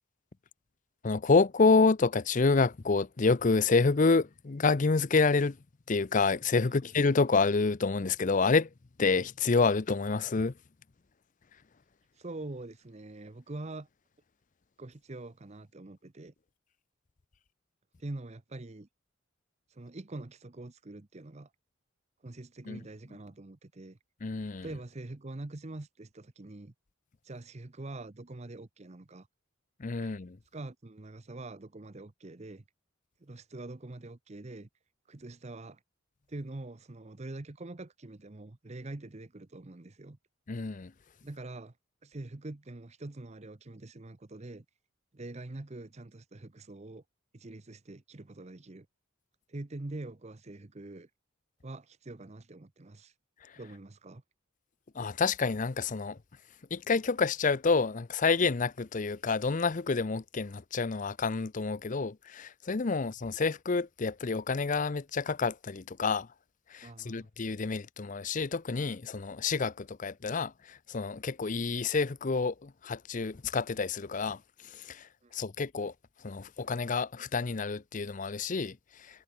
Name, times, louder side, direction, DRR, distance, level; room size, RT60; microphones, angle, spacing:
voice 1, 1.0-5.6 5.9-8.7 9.0-10.5 22.7-22.8 24.2-24.7 29.8-30.4 40.5-40.9 54.9-56.2 56.7-66.3 66.7-75.9 76.2-79.2, left 4 dB, 40° left, 0.6 m, -28 dB
voice 2, 12.1-13.9 14.8-16.3 18.0-18.9 19.7-21.5 22.2-24.0 24.6-26.7 27.2-29.3 30.0-30.1 30.5-32.6 33.2-34.7 35.1-35.8 36.3-40.2 41.2-41.8 42.0-44.6 45.1-47.0 47.3-48.9 49.5-51.1 51.6-53.1 53.6-54.2 66.8-67.3 75.2-75.4, right 2 dB, 30° right, 0.8 m, -44 dB
head